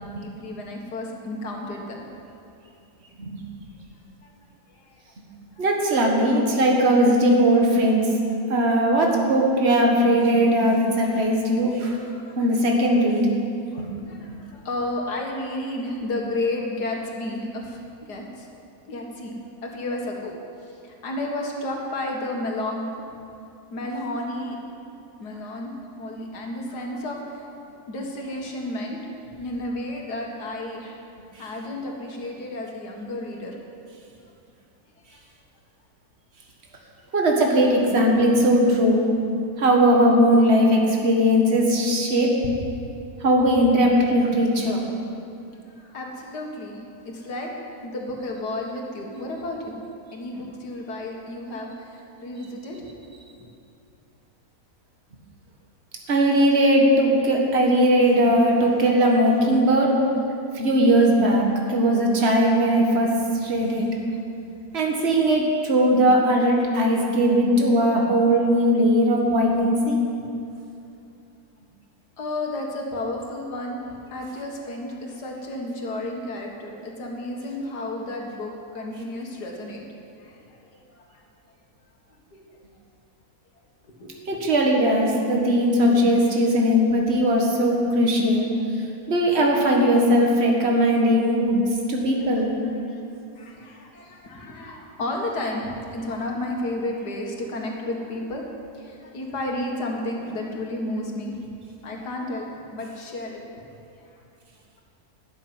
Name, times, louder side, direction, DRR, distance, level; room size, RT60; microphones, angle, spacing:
voice 1, 0.1-2.0 4.2-4.3 4.7-5.0 5.6-5.7 11.8-12.5 12.7-12.8 13.7-19.3 19.6-20.3 20.8-22.9 23.7-24.6 25.2-27.5 27.9-29.0 29.4-31.0 31.4-33.6 35.1-35.2 45.7-47.5 47.8-49.8 50.1-52.8 72.2-73.8 74.1-79.8 80.2-81.0 82.3-82.4 83.8-84.2 88.8-89.0 92.4-92.5 92.9-93.0 93.4-98.4 98.7-101.3 101.8-103.4, left 1 dB, 80° left, 0 dB, 2.2 m, -32 dB
voice 2, 5.6-8.0 8.5-12.0 12.4-13.3 13.8-13.9 37.1-39.1 39.6-42.4 43.2-44.8 56.1-60.0 60.5-63.9 64.7-70.0 84.3-88.5 89.1-91.6 91.9-92.5, equal, 40° right, 0 dB, 1.9 m, -19 dB
12.0 x 7.5 x 9.5 m, 2.6 s
omnidirectional pair, 1.7 m